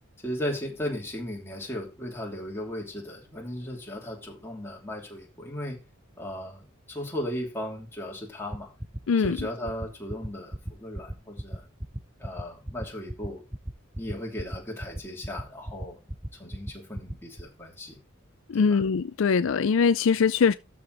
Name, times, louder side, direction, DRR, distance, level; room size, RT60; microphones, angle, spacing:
voice 1, 0.2-5.8 6.2-6.6 6.9-8.7 9.2-11.6 12.2-13.5 14.0-16.0 16.4-18.0 18.5-18.8, left 1 dB, 10° left, 2.8 m, -36 dB
sound 1, 8.5-17.4, right 1 dB, 10° right, 0.6 m, -34 dB
voice 2, 9.1-9.4 18.5-20.5, left 5 dB, 65° left, 0.4 m, -22 dB
12.5 x 5.0 x 4.0 m
head